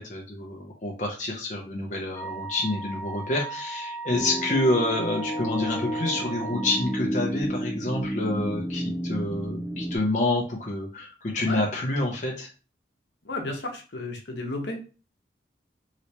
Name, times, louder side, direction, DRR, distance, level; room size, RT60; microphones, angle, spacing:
voice 1, 0.0-12.5, left 2 dB, 40° left, -1 dB, 0.6 m, -28 dB
Wind instrument woodwind instrument, 2.1-7.0, right 3 dB, 15° left, 1.2 m, -37 dB
sound 1, 4.1-10.0, equal, 25° right, 0.9 m, -31 dB
voice 2, 13.2-14.8, left 2 dB, 75° left, 2 dB, 0.9 m, -33 dB
3.2 x 2.9 x 2.8 m, 0.35 s
head